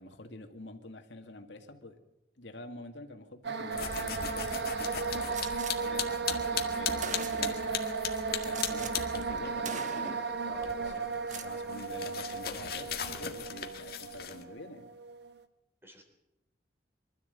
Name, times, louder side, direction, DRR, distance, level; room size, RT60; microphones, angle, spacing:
voice 1, 0.0-2.0 2.4-4.9 5.7-14.8, left 2 dB, 90° left, 5 dB, 2.3 m, -47 dB
sound 1, 3.4-15.3, right 4 dB, 70° right, 1.3 m, -35 dB
sound 2, 3.7-9.6 9.9-14.4, left 8 dB, 55° left, 1.9 m, -38 dB
Gunshot gunfire, 5.3-5.7 6.6-6.7 7.0-7.7 8.4-8.9 9.2-9.4 9.6-10.3 11.1-11.5, right 5 dB, 45° right, 1.3 m, -41 dB
voice 2, 10.4-11.0 15.8-16.0, right 1 dB, 15° right, 4 dB, 3.5 m, -50 dB
24.5 x 13.0 x 8.2 m, 0.91 s
head